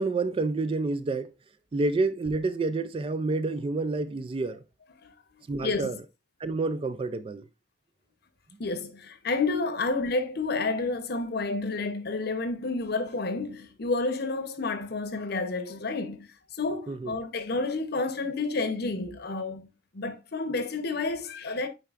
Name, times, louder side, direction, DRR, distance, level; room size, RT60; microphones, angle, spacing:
voice 1, 0.0-1.3 1.7-4.6 5.5-6.0 6.4-7.5 16.9-17.1, right 3 dB, 30° right, 0.3 m, -28 dB
voice 2, 8.6-19.7 19.9-21.7, left 3 dB, 60° left, 0.8 m, -30 dB
8.8 x 4.6 x 2.4 m
head